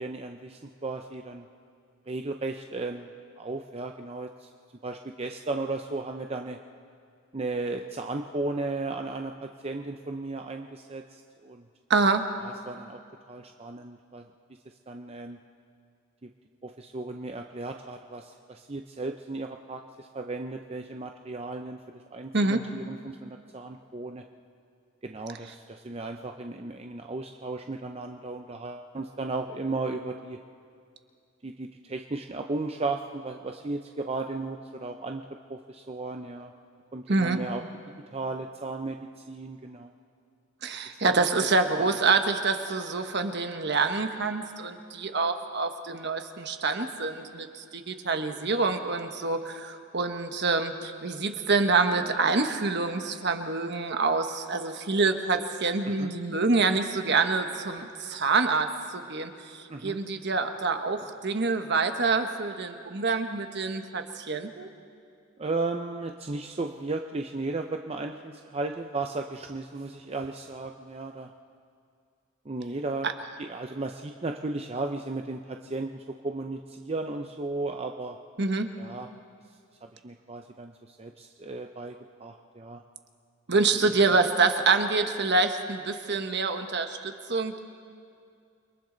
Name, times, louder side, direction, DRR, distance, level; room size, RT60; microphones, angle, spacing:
voice 1, 0.0-1.5 2.1-3.1 3.4-4.5 4.8-6.6 7.3-11.6 12.4-13.0 13.3-14.2 14.9-15.4 16.2-16.3 16.6-24.3 25.0-30.4 31.4-35.2 35.5-36.5 36.9-37.6 38.1-39.9 40.9-41.1 41.7-42.0 55.9-56.1 59.7-60.0 65.4-71.3 72.5-73.1 73.4-78.2 78.8-79.1 80.0-82.8 83.8-84.2, right 3 dB, 30° right, 4 dB, 0.6 m, -35 dB
voice 2, 11.9-12.3 22.3-22.6 37.1-37.4 40.6-64.7 73.0-73.1 78.4-78.7 83.5-87.6, right 4 dB, 55° right, 7 dB, 1.2 m, -26 dB
29.0 x 23.0 x 3.9 m, 2.3 s
head